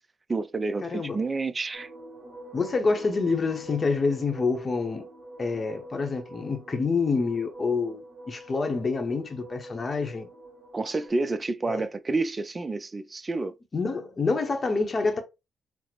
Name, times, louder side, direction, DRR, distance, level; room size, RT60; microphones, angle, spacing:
voice 1, 0.3-1.9 10.7-13.5, right 3 dB, 25° right, 0.4 m, -29 dB
voice 2, 0.8-1.2 2.5-5.1 5.4-10.3 11.7-11.8 13.7-15.2, left 4 dB, 35° left, 0.8 m, -27 dB
sound 1, 1.7-11.1, right 1 dB, 45° right, 1.0 m, -45 dB
4.0 x 2.0 x 3.0 m
cardioid pair, 90°, 0 cm